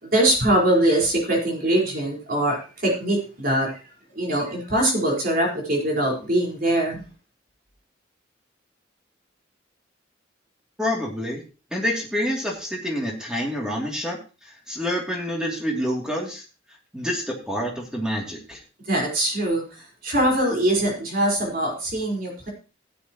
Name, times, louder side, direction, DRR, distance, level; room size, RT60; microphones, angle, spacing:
voice 1, 0.0-3.8 4.1-7.1 18.9-22.5, right 1 dB, 50° right, -1 dB, 4.6 m, -22 dB
voice 2, 10.8-11.4 11.7-14.2 14.7-16.4 16.9-18.6, equal, 5° right, -1 dB, 2.8 m, -27 dB
15.5 x 9.7 x 3.0 m, 0.33 s
head